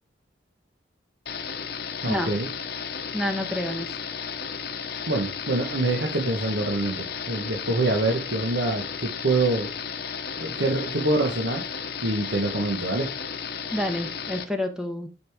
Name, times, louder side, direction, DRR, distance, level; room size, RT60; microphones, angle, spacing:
sound 1, 1.3-14.5, left 6 dB, 55° left, 1.0 m, -34 dB
voice 1, 2.0-2.5 5.1-9.7 10.4-11.6 12.0-13.1, right 2 dB, 80° right, 1.3 m, -25 dB
voice 2, 3.1-4.0 13.7-15.1, left 1 dB, 5° right, 1.1 m, -28 dB
9.7 x 5.2 x 3.6 m
head